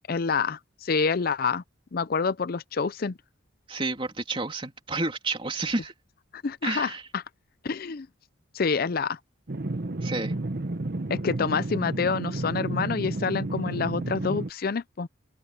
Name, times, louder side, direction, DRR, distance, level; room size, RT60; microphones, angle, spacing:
voice 1, 0.1-1.6 1.9-3.1 6.3-7.2 7.6-8.1 8.5-9.2 11.1-15.1, left 5 dB, 50° left, 0.5 m, -27 dB
voice 2, 3.7-5.9 6.6-7.0 10.0-10.3, right 2 dB, 30° right, 3.2 m, -30 dB
sound 1, 9.5-14.5, right 2 dB, 55° right, 1.0 m, -31 dB
open air
head